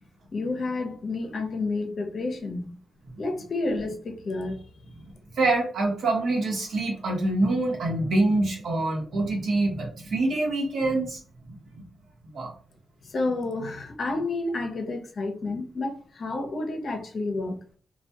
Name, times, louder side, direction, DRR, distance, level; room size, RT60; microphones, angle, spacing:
voice 1, 0.3-2.8 3.2-4.6 13.1-17.6, left 2 dB, 60° left, 0.6 m, -30 dB
voice 2, 5.3-11.2 11.5-11.6 12.3-12.5, right 2 dB, 75° right, 0.9 m, -25 dB
2.3 x 2.2 x 2.7 m
cardioid pair, 55°, 0 cm